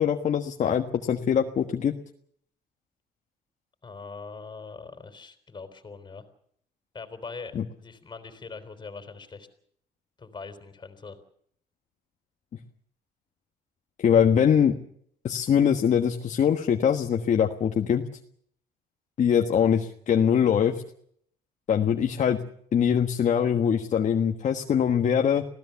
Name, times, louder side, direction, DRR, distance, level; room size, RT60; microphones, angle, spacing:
voice 1, 0.0-1.9 7.5-7.6 14.0-14.8 15.2-18.0 19.2-20.8 21.7-22.4 22.7-25.5, left 8 dB, 45° left, 4 dB, 1.4 m, -23 dB
voice 2, 3.8-6.3 6.9-9.5 10.2-11.2, left 4 dB, 25° left, 9 dB, 3.8 m, -42 dB
26.0 x 16.5 x 7.1 m, 0.66 s
cardioid pair, 110°, 17 cm